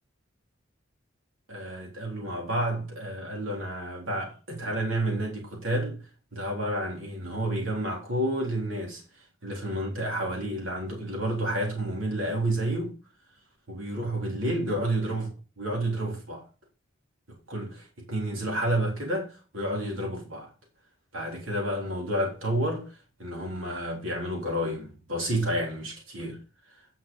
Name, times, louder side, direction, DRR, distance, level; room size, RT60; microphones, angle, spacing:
voice 1, 1.5-6.0 6.3-9.0 9.4-13.0 13.7-15.3 15.6-16.4 17.5-20.5 21.1-22.9 23.2-26.4, right 1 dB, 85° right, 3.5 m, -30 dB
9.7 x 5.9 x 5.3 m
head